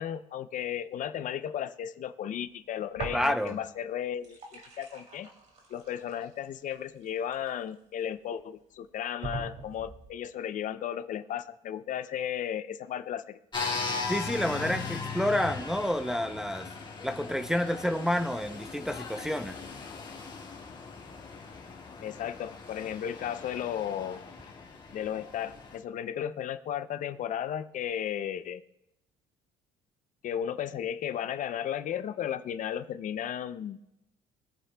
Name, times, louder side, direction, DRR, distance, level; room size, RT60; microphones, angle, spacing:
voice 1, 0.0-5.3 5.7-13.4 22.0-24.2 24.9-28.6 30.2-33.9, left 9 dB, 50° left, 12 dB, 0.6 m, -34 dB
sound 1, 2.9-3.7 4.0-8.0 8.6-8.7 9.2-10.1, right 3 dB, 45° right, 2.7 m, -42 dB
voice 2, 3.1-3.6 14.1-16.7 17.0-19.5, left 1 dB, 5° right, 6 dB, 0.6 m, -29 dB
sound 2, 13.5-25.8, left 4 dB, 25° left, 1.9 m, -39 dB
24.0 x 8.5 x 2.2 m, 0.86 s
cardioid pair, 115°, 17 cm